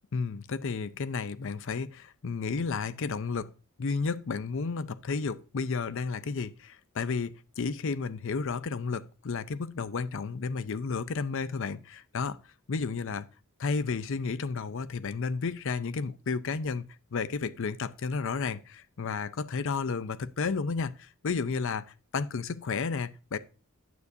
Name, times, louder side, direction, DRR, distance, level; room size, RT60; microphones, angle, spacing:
voice 1, 0.1-3.5 3.8-12.4 12.7-13.3 13.6-23.4, left 4 dB, 65° left, 0.5 m, -32 dB
9.5 x 8.1 x 2.7 m
head